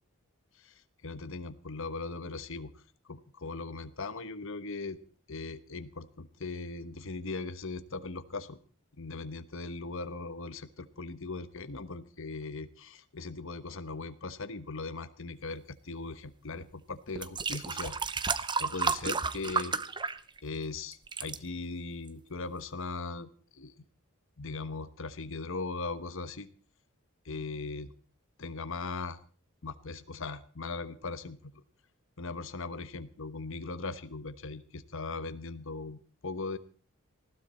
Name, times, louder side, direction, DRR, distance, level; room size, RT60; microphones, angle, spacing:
voice 1, 0.6-5.0 5.3-8.6 9.0-17.9 18.6-19.7 20.4-23.8 24.4-26.5 27.2-27.9 28.4-29.2 29.6-31.5 32.2-36.6, left 3 dB, 65° left, 11 dB, 1.1 m, -39 dB
sound 1, 16.5-16.6 17.1-20.6 20.9-21.4 22.1-22.2, right 5 dB, 20° right, 0.8 m, -32 dB
19.5 x 15.5 x 4.4 m, 0.40 s
head